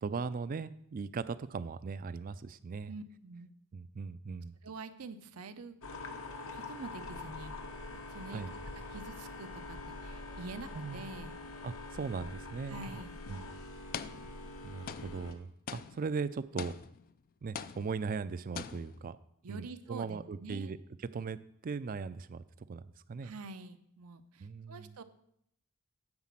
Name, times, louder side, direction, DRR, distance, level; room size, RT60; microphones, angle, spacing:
voice 1, 0.0-2.9 3.7-4.5 8.3-8.5 10.7-11.0 11.6-12.9 13.3-13.5 14.6-16.7 17.4-19.2 19.5-20.8 21.0-22.4 22.7-23.3 24.4-25.0, right 5 dB, 40° right, 15 dB, 0.4 m, -39 dB
voice 2, 2.9-3.5 4.6-5.8 6.5-8.5 8.9-11.4 12.7-13.2 19.4-20.7 23.2-25.0, right 3 dB, 85° right, 10 dB, 0.6 m, -46 dB
sound 1, 5.8-15.3, left 2 dB, 70° left, 1.0 m, -45 dB
sound 2, 12.9-13.1 13.9-14.6 14.9-17.2 17.6-18.3 18.6-19.1, left 7 dB, 40° left, 0.3 m, -44 dB
9.7 x 4.1 x 7.4 m, 0.72 s
head